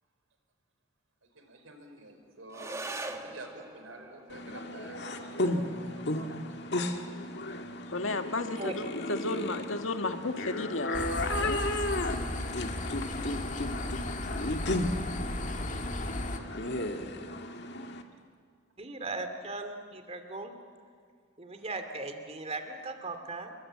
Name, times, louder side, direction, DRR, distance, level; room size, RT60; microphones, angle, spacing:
voice 1, 1.3-6.3 8.6-8.7 12.5-13.5 13.8-14.7, right 2 dB, 85° right, 5 dB, 4.6 m, -51 dB
sound 1, 2.5-11.5, right 2 dB, 15° right, 1.7 m, -46 dB
sound 2, 4.3-18.0, left 1 dB, 60° left, 1.9 m, -34 dB
voice 2, 7.9-11.0 11.4-11.6, left 2 dB, 80° left, 6 dB, 1.8 m, -33 dB
sound 3, 10.9-16.4, left 2 dB, 40° left, 1.8 m, -35 dB
voice 3, 18.8-20.6 21.4-23.5, right 2 dB, 30° right, 7 dB, 2.4 m, -38 dB
28.5 x 23.0 x 8.8 m, 2.1 s
head